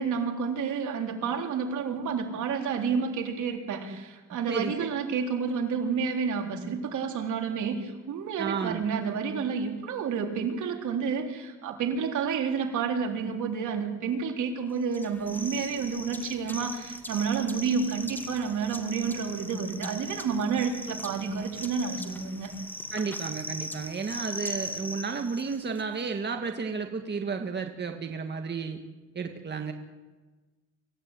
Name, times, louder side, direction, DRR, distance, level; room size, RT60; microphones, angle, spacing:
voice 1, 0.0-22.5, right 6 dB, 75° right, 2 dB, 3.8 m, -30 dB
voice 2, 4.5-5.0 8.4-8.9 22.9-28.8 29.1-29.7, right 5 dB, 35° right, 4 dB, 2.1 m, -32 dB
sound 1, 14.9-25.8, left 1 dB, 5° left, 2.0 m, -40 dB
25.0 x 15.5 x 9.1 m, 1.3 s
cardioid pair, 90°, 30 cm